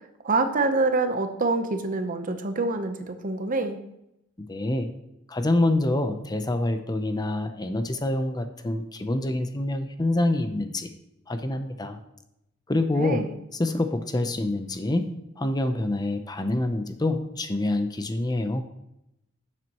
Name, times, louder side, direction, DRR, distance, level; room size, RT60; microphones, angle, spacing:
voice 1, 0.2-3.8 13.0-13.3, right 3 dB, 45° right, 7 dB, 0.8 m, -26 dB
voice 2, 4.4-4.9 5.3-10.9 11.3-12.0 12.7-13.2 13.5-15.1 15.4-18.6, left 2 dB, 20° left, 8 dB, 0.7 m, -26 dB
11.5 x 7.6 x 3.0 m, 0.84 s
head